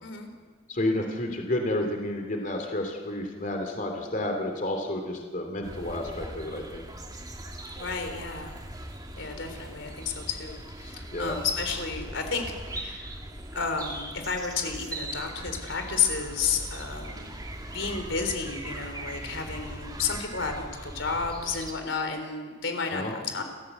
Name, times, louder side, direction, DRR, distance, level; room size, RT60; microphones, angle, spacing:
voice 1, 0.7-6.8 11.1-11.4 22.9-23.1, left 1 dB, 45° left, 3 dB, 2.9 m, -30 dB
sound 1, 5.6-21.7, right 1 dB, 20° right, 2.7 m, -40 dB
voice 2, 7.8-8.5 9.1-12.4 12.7-13.2 13.6-17.3 17.7-23.4, left 5 dB, 85° left, 6 dB, 3.8 m, -31 dB
30.0 x 15.0 x 8.0 m, 1.5 s
head